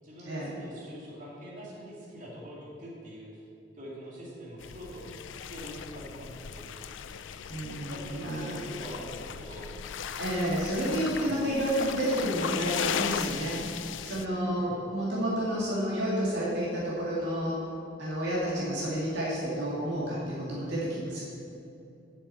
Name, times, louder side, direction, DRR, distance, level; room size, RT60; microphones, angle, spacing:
voice 1, 0.0-3.4 3.7-5.1 5.5-6.7 7.9-9.7 11.1-11.4 14.4-14.8, equal, 45° right, -6 dB, 2.6 m, -44 dB
sound 1, 4.6-14.3, left 8 dB, 90° left, 0.4 m, -37 dB
voice 2, 7.5-8.6 10.2-13.6 14.0-17.6 18.0-21.2, equal, 65° right, -7 dB, 2.3 m, -30 dB
7.4 x 6.6 x 7.9 m, 2.7 s
head